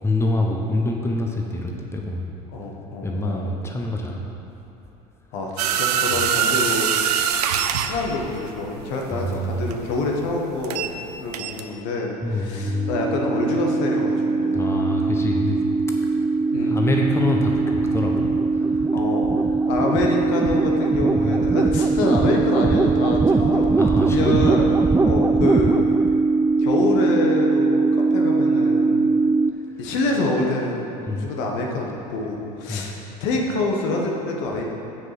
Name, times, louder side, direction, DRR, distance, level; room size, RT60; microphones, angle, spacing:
voice 1, 0.0-2.4 3.0-4.4 6.1-6.2 7.9-8.3 9.1-9.7 12.2-12.9 14.5-15.6 16.6-18.9 21.2-21.4 23.8-24.8 29.7-29.9 31.0-31.3 32.7-32.9, left 1 dB, 15° left, 0 dB, 1.1 m, -26 dB
voice 2, 2.5-3.4 5.3-6.9 7.8-10.9 11.2-14.7 16.5-16.8 18.9-19.3 19.7-24.7 25.0-25.8 26.6-29.1 29.8-30.8 31.2-34.6, left 2 dB, 65° left, 0 dB, 1.4 m, -26 dB
sound 1, 5.6-11.0 11.3-11.6, right 8 dB, 85° right, 0.5 m, -23 dB
sound 2, 12.6-29.5, right 3 dB, 15° right, 0.3 m, -20 dB
7.4 x 6.4 x 6.0 m, 2.8 s
hypercardioid pair, 80°, 20 cm